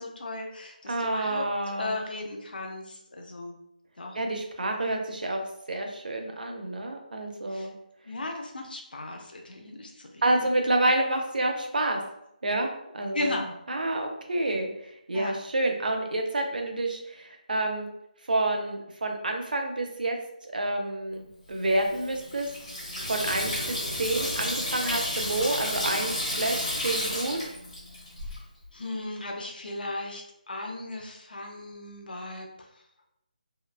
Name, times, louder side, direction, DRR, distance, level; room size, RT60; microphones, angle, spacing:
voice 1, 0.0-3.6 4.0-4.2 7.5-7.7 8.1-10.2 13.1-13.6 15.1-15.3 28.7-32.7, left 2 dB, 85° left, 1 dB, 0.5 m, -36 dB
voice 2, 0.9-2.0 4.1-5.4 5.7-7.7 10.2-12.0 12.4-13.4 13.7-14.7 15.1-17.9 18.3-20.2 20.4-22.5 23.1-27.4, right 2 dB, 70° right, 3 dB, 0.5 m, -28 dB
Water tap faucet / Sink (filling or washing), 21.6-28.4, left 1 dB, 40° left, 1.1 m, -32 dB
3.0 x 2.0 x 2.2 m, 0.80 s
hypercardioid pair, 180°, 5 cm